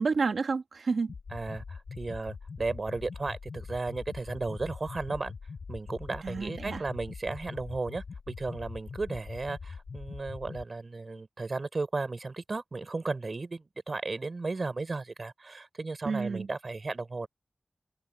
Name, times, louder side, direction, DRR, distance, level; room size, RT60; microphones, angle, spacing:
voice 1, 0.0-1.1 6.2-6.8 16.0-16.5, right 4 dB, 90° right, 2.3 m, -30 dB
sound 1, 1.1-10.6, left 5 dB, 90° left, 5.3 m, -43 dB
voice 2, 1.3-5.3 5.7-17.3, right 3 dB, 55° right, 5.7 m, -35 dB
open air
cardioid pair, 55°, 0 cm